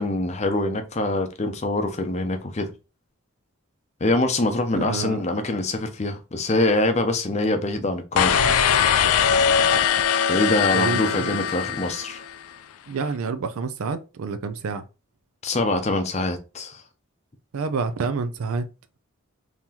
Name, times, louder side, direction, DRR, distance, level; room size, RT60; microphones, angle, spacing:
voice 1, 0.0-2.7 4.0-8.6 10.3-12.2 15.4-16.8, left 2 dB, 30° left, 0.5 m, -24 dB
voice 2, 4.7-5.2 10.7-11.4 12.9-14.8 17.5-18.7, right 4 dB, 80° right, 0.4 m, -28 dB
sound 1, 8.2-12.4, left 7 dB, 85° left, 0.4 m, -21 dB
3.8 x 2.9 x 2.8 m
head